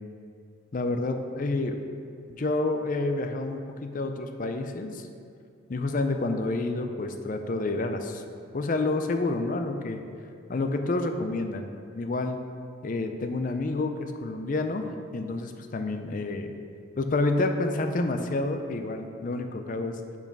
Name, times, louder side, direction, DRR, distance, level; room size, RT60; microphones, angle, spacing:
voice 1, 0.7-1.8 2.4-5.1 5.7-8.2 8.5-10.0 10.5-11.7 11.9-12.4 12.8-14.8 15.1-16.6 17.0-20.0, left 2 dB, 40° left, 6 dB, 0.4 m, -29 dB
5.6 x 4.6 x 5.9 m, 2.4 s
head